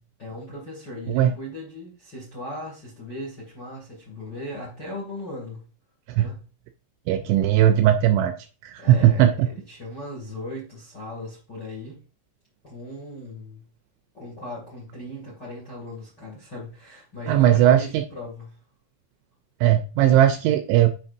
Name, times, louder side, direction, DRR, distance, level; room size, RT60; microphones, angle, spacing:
voice 1, 0.2-5.6 6.1-6.4 8.8-12.0 12.6-13.6 14.1-18.5, left 1 dB, 35° left, 1.6 m, -38 dB
voice 2, 7.1-8.3 8.6-9.5 17.3-18.0 19.6-21.0, right 11 dB, 85° right, 2.7 m, -18 dB
8.5 x 5.8 x 2.6 m
omnidirectional pair, 5.8 m